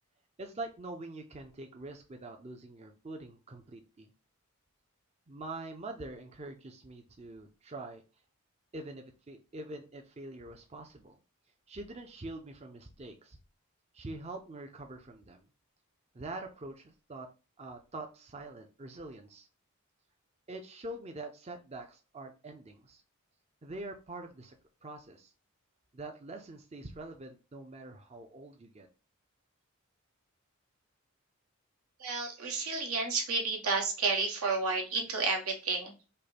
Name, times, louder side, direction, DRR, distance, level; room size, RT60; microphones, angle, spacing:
voice 1, 0.4-4.1 5.3-8.0 8.7-11.2 11.7-13.4 13.9-15.4 16.1-17.3 17.6-19.5 20.5-23.0 23.6-24.6 24.8-25.3 25.9-28.9, right 2 dB, 30° right, 4 dB, 0.5 m, -44 dB
voice 2, 32.0-35.9, right 4 dB, 85° right, 1 dB, 1.4 m, -31 dB
5.3 x 2.2 x 4.2 m, 0.32 s
head